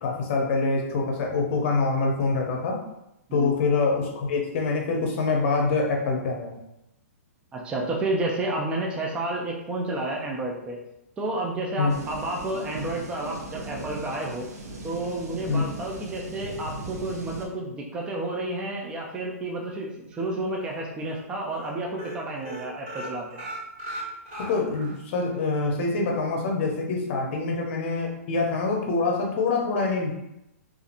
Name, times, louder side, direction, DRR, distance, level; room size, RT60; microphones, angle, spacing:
voice 1, 0.0-2.8 3.3-6.5 11.8-11.9 15.5-15.6 24.4-30.1, left 3 dB, 50° left, 1 dB, 0.7 m, -25 dB
voice 2, 7.5-10.8 11.2-14.5 14.8-23.4 27.3-27.4, right 2 dB, 10° right, 0 dB, 0.3 m, -30 dB
sound 1, 11.9-17.5, right 2 dB, 85° right, 0.7 m, -38 dB
sound 2, 20.1-20.7 21.0-21.2 21.5-21.7 21.9-25.0 25.3-25.4 25.8-25.9, right 1 dB, 50° right, 1.5 m, -38 dB
2.8 x 2.4 x 2.5 m, 0.85 s
hypercardioid pair, 135°, 8 cm